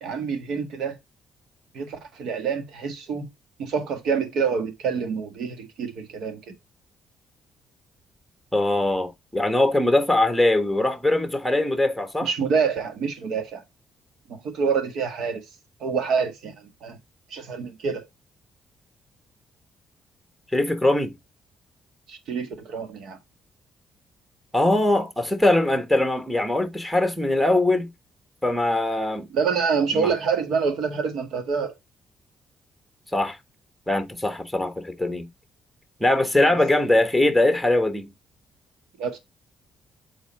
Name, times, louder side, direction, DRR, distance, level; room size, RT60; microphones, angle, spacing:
voice 1, 0.0-1.0 1.7-3.3 3.6-6.4 12.2-13.6 14.3-15.4 15.8-16.5 16.8-17.0 17.3-18.0 22.1-23.2 29.3-31.7 36.5-36.6 39.0-39.2, right 5 dB, 80° right, 1.5 m, -26 dB
voice 2, 8.5-12.3 20.5-21.1 24.5-27.9 28.4-29.3 29.9-30.1 33.1-33.4 33.9-35.3 36.0-38.1, left 1 dB, ahead, 1.3 m, -21 dB
7.0 x 3.9 x 4.2 m
cardioid pair, 90°, 0 cm